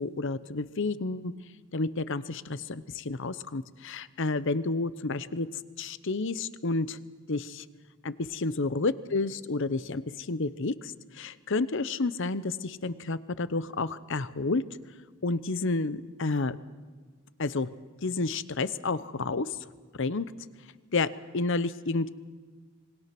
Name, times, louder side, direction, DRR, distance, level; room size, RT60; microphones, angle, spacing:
voice 1, 0.0-1.3 1.7-5.5 5.8-7.0 7.3-7.6 8.0-14.6 15.2-16.6 17.4-17.7 18.0-19.6 19.9-20.3 20.9-22.1, left 3 dB, 60° left, 15 dB, 0.8 m, -30 dB
26.5 x 22.0 x 6.0 m, 1.5 s
head